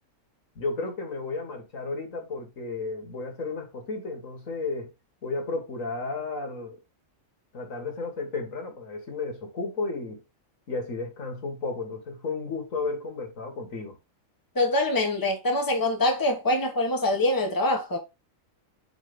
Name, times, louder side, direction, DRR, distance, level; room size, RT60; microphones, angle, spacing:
voice 1, 0.6-4.9 5.2-6.8 7.5-10.2 10.7-14.0, left 3 dB, 80° left, 2.1 m, -33 dB
voice 2, 14.5-18.0, left 1 dB, 15° left, 1.2 m, -24 dB
5.2 x 4.1 x 5.0 m
omnidirectional pair, 1.4 m